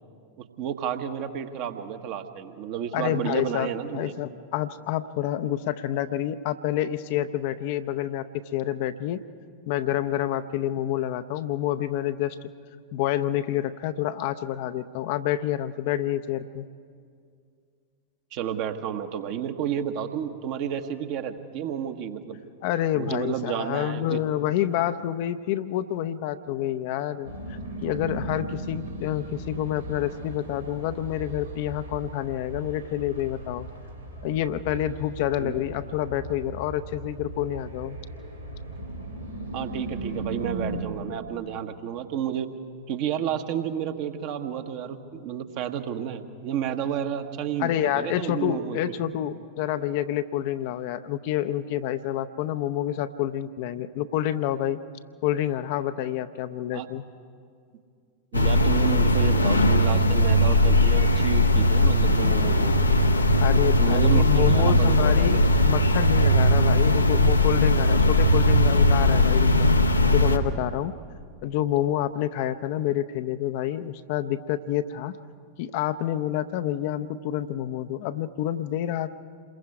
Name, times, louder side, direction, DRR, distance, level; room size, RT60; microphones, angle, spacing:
voice 1, 0.4-4.1 18.3-22.4 22.9-24.2 35.4-35.5 39.5-42.5 42.9-48.9 56.7-56.9 58.3-62.7 63.8-65.4, right 9 dB, 45° right, 7 dB, 1.3 m, -31 dB
voice 2, 2.9-9.2 9.7-12.4 12.9-16.7 22.6-33.7 34.2-38.0 47.6-54.8 55.2-57.0 63.4-69.7 70.1-70.9 71.4-75.2 75.6-79.1, left 12 dB, 50° left, 11 dB, 0.7 m, -28 dB
sound 1, 27.2-40.8, right 2 dB, 90° right, 2.7 m, -37 dB
sound 2, 58.3-70.4, left 1 dB, 80° left, 1.0 m, -19 dB
27.5 x 22.0 x 4.8 m, 2.2 s
figure-of-eight pair, 90°, 0 cm